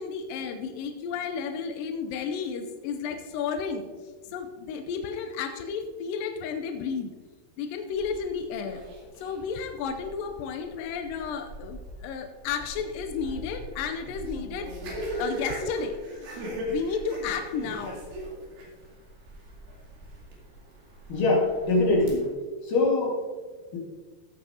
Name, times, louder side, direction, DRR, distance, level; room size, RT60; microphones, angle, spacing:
voice 1, 0.0-3.9 4.3-7.1 7.6-8.8 9.2-14.7 15.2-16.0 16.7-18.0, left 6 dB, 80° left, 6 dB, 2.0 m, -32 dB
sound 1, 7.9-22.3, right 1 dB, 65° right, 4.1 m, -39 dB
voice 2, 21.1-22.3 22.6-23.2 23.7-23.8, left 2 dB, 60° left, -2 dB, 3.1 m, -23 dB
15.5 x 8.1 x 2.8 m, 1.4 s
omnidirectional pair, 4.7 m